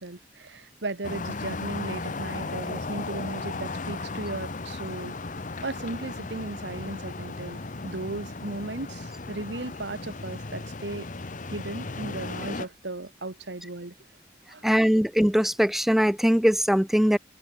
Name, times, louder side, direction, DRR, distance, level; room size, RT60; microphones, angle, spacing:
voice 1, 0.0-5.2 5.6-11.1 11.4-13.9 14.5-14.7, right 2 dB, 65° right, 1.4 m, -36 dB
sound 1, 1.0-12.7, left 3 dB, 45° left, 1.1 m, -36 dB
voice 2, 14.6-17.2, equal, ahead, 0.3 m, -21 dB
head